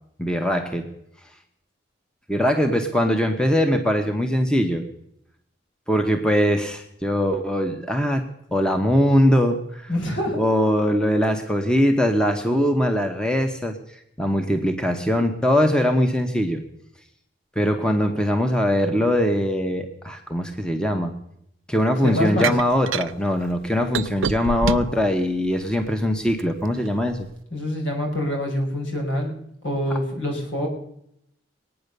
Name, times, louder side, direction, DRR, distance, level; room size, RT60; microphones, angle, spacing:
voice 1, 0.2-0.9 2.3-4.9 5.9-8.2 8.5-9.9 10.4-13.7 14.2-16.6 17.6-21.2 21.7-27.3, equal, 5° left, 5 dB, 1.1 m, -21 dB
voice 2, 9.9-10.4 22.0-22.5 27.5-29.3 29.6-30.7, left 1 dB, 70° left, 1 dB, 5.4 m, -25 dB
sound 1, 22.4-23.1 23.9-25.0 25.6-26.5, right 5 dB, 85° right, 0.6 m, -25 dB
22.5 x 9.4 x 6.7 m, 0.75 s
head